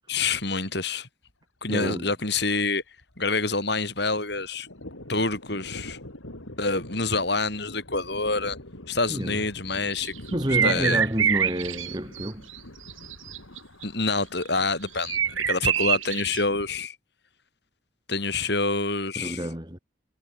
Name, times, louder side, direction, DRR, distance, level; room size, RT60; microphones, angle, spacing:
voice 1, 0.1-1.1 1.6-2.8 3.2-4.7 5.1-6.0 6.6-8.6 8.9-10.1 10.6-11.0 13.8-15.2 15.5-16.9 18.1-19.4, left 3 dB, 55° left, 6.7 m, -27 dB
Thunder, 1.3-1.4 1.7-1.8 2.1-3.6 3.9-16.9, left 1 dB, 80° left, 5.2 m, -45 dB
voice 2, 1.7-2.1 9.1-9.5 10.3-12.5 19.1-19.8, equal, 20° right, 3.3 m, -29 dB
sound 1, 9.9-12.6 12.9-13.8 15.0-16.4, right 8 dB, 80° right, 2.8 m, -25 dB
head